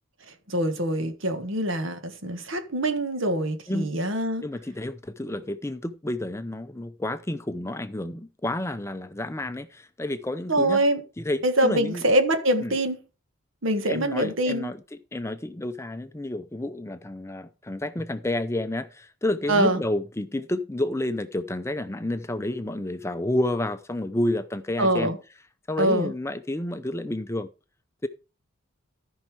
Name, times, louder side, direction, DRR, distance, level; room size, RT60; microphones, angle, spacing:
voice 1, 0.5-4.5 10.5-11.0 11.4-13.0 13.6-14.7 19.5-19.8 24.8-25.2 25.8-26.1, right 1 dB, 70° right, 1.6 m, -24 dB
voice 2, 4.4-10.8 11.2-12.0 12.6-12.7 13.8-14.8 15.1-25.1 25.7-27.5 28.0-28.1, left 1 dB, 15° left, 0.5 m, -30 dB
14.0 x 5.5 x 4.8 m
head